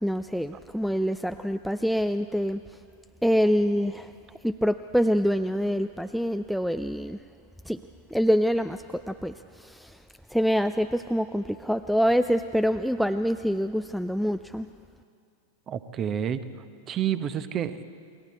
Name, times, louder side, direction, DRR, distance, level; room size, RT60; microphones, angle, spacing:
voice 1, 0.0-2.6 3.2-4.1 4.4-7.2 7.7-7.8 8.1-10.0 10.3-14.7, equal, ahead, 11 dB, 0.4 m, -25 dB
voice 2, 15.7-16.4 16.9-17.8, right 9 dB, 30° right, 12 dB, 1.0 m, -29 dB
28.5 x 21.5 x 4.3 m, 2.3 s
figure-of-eight pair, 90°, 0 cm